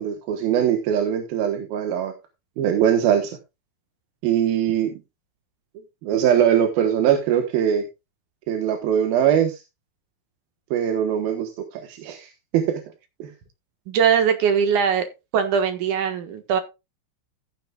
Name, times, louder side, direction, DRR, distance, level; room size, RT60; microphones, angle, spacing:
voice 1, 0.0-2.1 2.6-3.4 4.2-4.9 6.0-7.9 8.5-9.6 10.7-12.8 13.2-13.3, right 9 dB, 90° right, 5 dB, 3.1 m, -21 dB
voice 2, 13.9-15.1 15.3-16.6, right 7 dB, 65° right, 8 dB, 2.7 m, -20 dB
14.5 x 9.4 x 2.4 m, 0.25 s
omnidirectional pair, 4.1 m